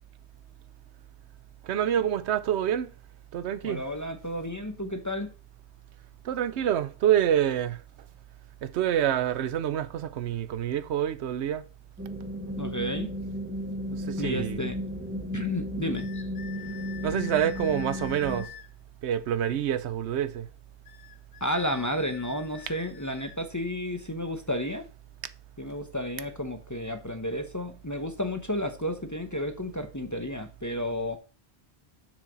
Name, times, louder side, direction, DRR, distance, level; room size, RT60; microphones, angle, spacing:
voice 1, 1.6-2.9 3.3-3.8 6.2-7.8 8.6-11.6 13.9-14.7 17.0-18.5 19.0-20.5, right 10 dB, 85° right, 0.9 m, -27 dB
voice 2, 3.6-5.3 12.6-13.1 14.2-14.8 15.3-16.3 21.4-24.8 25.6-31.2, left 1 dB, 20° left, 0.7 m, -32 dB
sound 1, 12.0-18.4, equal, 10° right, 0.8 m, -34 dB
sound 2, 15.9-18.7 20.9-23.4, left 12 dB, 65° left, 0.9 m, -47 dB
7.1 x 6.2 x 4.0 m
omnidirectional pair, 1.1 m